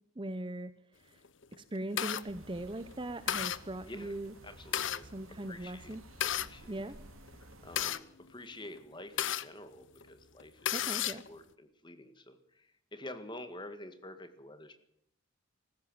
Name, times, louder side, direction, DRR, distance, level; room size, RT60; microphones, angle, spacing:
voice 1, 0.2-0.7 1.0-1.2 1.6-4.3 5.1-6.0 6.7-7.0 10.7-11.2, right 1 dB, 25° right, 13 dB, 0.8 m, -40 dB
sound 1, 1.2-2.2 2.8-2.9 3.3-3.6 4.4-5.0 5.9-6.5 7.3-9.4 10.0-10.1 10.4-11.3, left 10 dB, 60° left, 0.8 m, -33 dB
sound 2, 2.2-7.9, right 1 dB, 85° right, 2.7 m, -54 dB
voice 2, 3.8-4.1 4.4-5.9 6.3-7.0 7.4-14.8, left 1 dB, 20° left, 9 dB, 1.8 m, -49 dB
19.5 x 15.5 x 8.9 m, 0.76 s
head